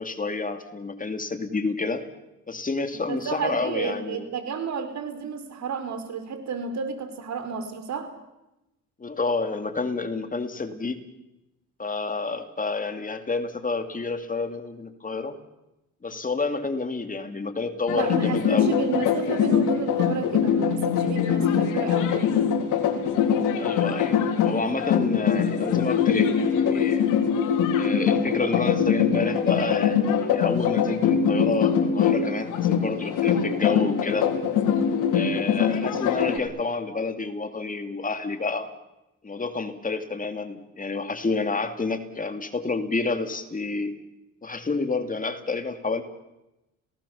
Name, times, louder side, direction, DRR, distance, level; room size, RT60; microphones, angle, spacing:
voice 1, 0.0-2.1 2.5-4.2 9.0-11.0 11.8-15.4 16.0-18.8 23.6-27.0 27.8-34.3 35.1-38.7 39.2-44.0 44.4-46.0, left 3 dB, 25° left, 8 dB, 2.7 m, -29 dB
voice 2, 3.1-8.1 17.9-22.3, right 6 dB, 65° right, 8 dB, 4.6 m, -32 dB
sound 1, 17.9-36.4, left 7 dB, 90° left, 3.7 m, -23 dB
30.0 x 18.5 x 7.2 m, 0.94 s
cardioid pair, 90°, 30 cm